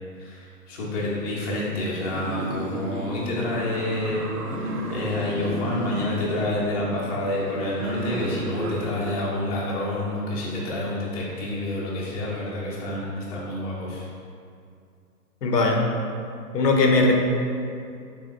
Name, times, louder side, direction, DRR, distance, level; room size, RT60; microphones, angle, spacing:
voice 1, 0.2-14.1, left 1 dB, 25° left, -6 dB, 0.6 m, -28 dB
sound 1, 2.0-9.2, right 1 dB, 75° right, 0.7 m, -33 dB
voice 2, 15.4-15.8 16.5-17.1, left 3 dB, 85° left, 1 dB, 0.8 m, -19 dB
3.5 x 3.1 x 3.7 m, 2.4 s
hypercardioid pair, 135°, 47 cm